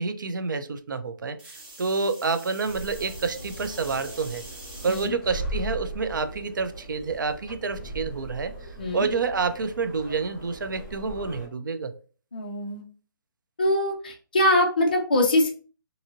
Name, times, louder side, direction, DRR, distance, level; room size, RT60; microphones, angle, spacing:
voice 1, 0.0-1.4 1.8-4.4 4.8-8.5 8.9-11.9, right 4 dB, 60° right, 10 dB, 0.4 m, -28 dB
sound 1, 1.4-5.1 5.7-6.2 7.5-7.6, right 2 dB, 30° right, 1.1 m, -45 dB
sound 2, 2.6-11.5, right 1 dB, 5° left, 0.9 m, -39 dB
voice 2, 12.3-12.8 13.6-15.5, left 1 dB, 25° left, 0 dB, 0.3 m, -23 dB
2.6 x 2.6 x 2.8 m, 0.39 s
hypercardioid pair, 175°, 12 cm